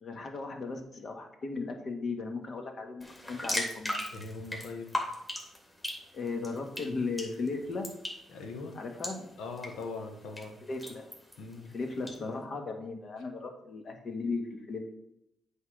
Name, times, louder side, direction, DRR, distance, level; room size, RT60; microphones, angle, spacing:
voice 1, 0.0-4.0 6.1-7.9 8.7-9.3 10.7-11.1 11.7-14.4 14.7-14.9, left 3 dB, 55° left, 3 dB, 1.7 m, -36 dB
sound 1, 3.0-12.2, left 1 dB, 20° left, 2.8 m, -40 dB
voice 2, 4.1-4.9 8.3-8.8 9.4-10.6 11.4-11.7, left 3 dB, 80° left, 4 dB, 1.3 m, -41 dB
8.0 x 3.8 x 6.4 m, 0.80 s
supercardioid pair, 70°, 0 cm